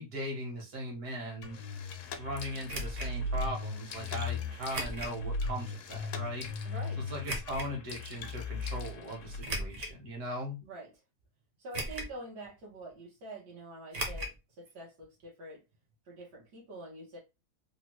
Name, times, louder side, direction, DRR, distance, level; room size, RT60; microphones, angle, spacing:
voice 1, 0.0-1.6 2.2-6.5 7.1-10.6, equal, 70° right, 1.7 m, -39 dB
sound 1, 1.4-9.4, left 3 dB, 70° left, 0.7 m, -38 dB
sound 2, 2.7-3.1 4.7-5.2 5.7-5.8 7.2-7.7 9.4-10.0 10.6-10.7 11.7-12.2 12.5-12.6 13.9-14.4 14.7-14.8 15.0-15.1, right 1 dB, 50° right, 0.8 m, -37 dB
voice 2, 6.6-7.1 10.6-11.0 11.6-15.6 16.0-17.2, right 1 dB, 85° right, 1.6 m, -46 dB
3.5 x 2.1 x 3.0 m
omnidirectional pair, 1.7 m